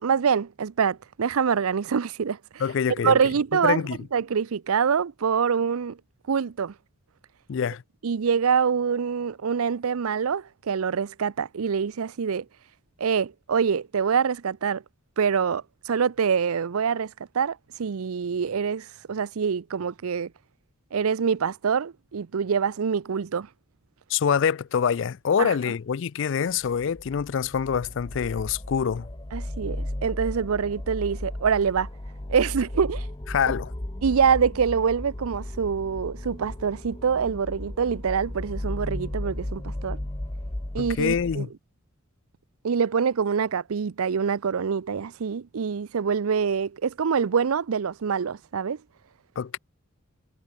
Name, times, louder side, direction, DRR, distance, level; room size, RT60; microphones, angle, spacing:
voice 1, 0.0-2.6 3.0-3.8 4.1-6.0 6.3-6.7 8.0-12.5 13.0-14.8 15.2-20.3 20.9-23.5 25.4-25.6 29.3-31.9 32.3-33.1 34.0-40.0 40.7-41.5 42.6-48.8, right 6 dB, 85° right, 0.5 m, -25 dB
voice 2, 2.6-3.2 3.6-4.0 7.5-7.8 24.1-29.1 33.3-33.7 40.8-41.5 49.4-49.6, left 7 dB, 60° left, 0.4 m, -25 dB
sound 1, 26.6-41.4, left 1 dB, 20° left, 0.9 m, -35 dB
head